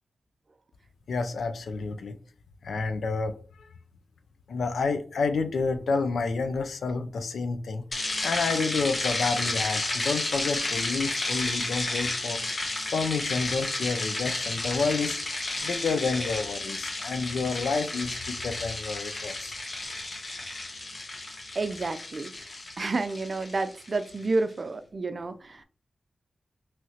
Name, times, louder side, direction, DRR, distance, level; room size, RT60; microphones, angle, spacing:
voice 1, 1.1-2.2 2.6-3.7 4.5-12.4 12.9-15.2 15.6-19.6, left 4 dB, 85° left, 0.4 m, -29 dB
sound 1, 7.9-24.2, left 2 dB, 55° left, 1.0 m, -32 dB
voice 2, 21.3-22.3 22.8-25.6, right 3 dB, 55° right, 0.4 m, -30 dB
3.1 x 2.7 x 2.8 m
cardioid pair, 40°, 0 cm